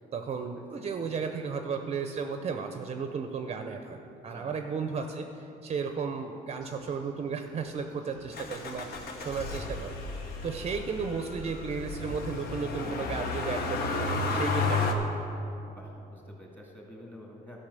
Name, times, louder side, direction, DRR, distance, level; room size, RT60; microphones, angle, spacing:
voice 1, 0.1-8.9 9.2-10.0 10.4-15.1, right 5 dB, 40° right, 6 dB, 0.6 m, -34 dB
voice 2, 4.3-4.8 15.7-17.7, left 1 dB, 10° left, -1 dB, 2.1 m, -49 dB
sound 1, 6.6-12.2, left 1 dB, 45° left, 2.8 m, -53 dB
Motor vehicle (road), 8.3-14.9, left 3 dB, 65° left, 1.0 m, -32 dB
12.0 x 5.6 x 6.7 m, 2.9 s
cardioid pair, 110°, 17 cm